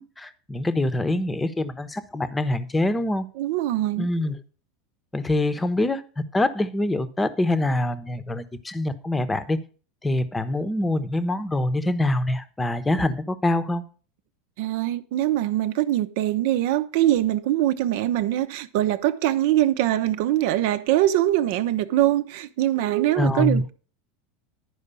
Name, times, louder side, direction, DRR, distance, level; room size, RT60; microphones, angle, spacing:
voice 1, 0.0-3.3 4.0-4.3 5.1-6.0 6.3-9.6 10.0-13.8 23.2-23.6, left 1 dB, 10° left, 0.9 m, -25 dB
voice 2, 3.4-4.1 14.6-23.7, right 13 dB, 65° right, 0.8 m, -23 dB
11.0 x 4.8 x 6.9 m
supercardioid pair, 125°, 0 cm